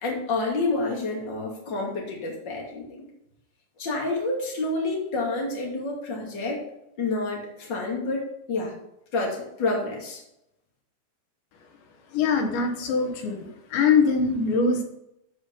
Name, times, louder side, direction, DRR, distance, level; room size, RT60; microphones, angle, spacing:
voice 1, 0.0-3.0 3.8-6.6 7.0-8.2 8.5-8.7 9.1-10.2, left 2 dB, 30° left, -1 dB, 2.6 m, -28 dB
voice 2, 12.1-14.8, left 5 dB, 90° left, 3 dB, 3.8 m, -23 dB
14.5 x 5.0 x 5.5 m, 0.81 s
omnidirectional pair, 4.9 m